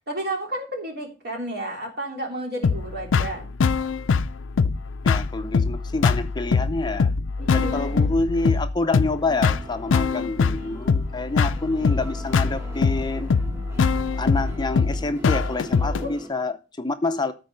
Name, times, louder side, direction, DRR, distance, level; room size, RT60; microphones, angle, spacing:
voice 1, 0.0-3.5 7.4-8.1 16.0-16.1, right 1 dB, 55° right, 3.3 m, -32 dB
sound 1, 2.6-16.0, left 5 dB, 75° left, 0.4 m, -23 dB
voice 2, 5.0-7.1 7.4-13.3 14.2-17.3, left 3 dB, 20° left, 0.5 m, -27 dB
sound 2, 9.2-16.3, right 2 dB, 15° right, 2.0 m, -42 dB
13.5 x 4.7 x 5.4 m
head